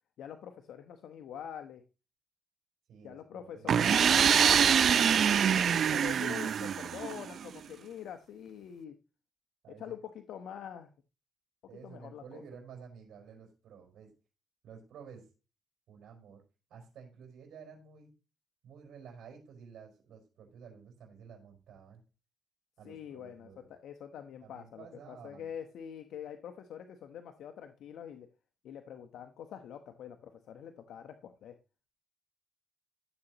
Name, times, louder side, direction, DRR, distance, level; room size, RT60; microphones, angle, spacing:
voice 1, 0.2-1.8 3.0-8.9 9.8-10.9 11.8-12.4 22.8-28.3 28.6-31.6, left 9 dB, 75° left, 6 dB, 1.0 m, -45 dB
voice 2, 2.9-3.8 9.6-10.0 11.7-14.1 14.6-15.3 15.9-16.4 16.7-18.1 18.6-22.0 22.8-23.7 24.4-25.5, right 6 dB, 75° right, 0 dB, 4.5 m, -52 dB
sound 1, 3.7-7.4, right 8 dB, 60° right, 0.4 m, -25 dB
14.0 x 7.9 x 3.0 m, 0.32 s
cardioid pair, 90°, 0 cm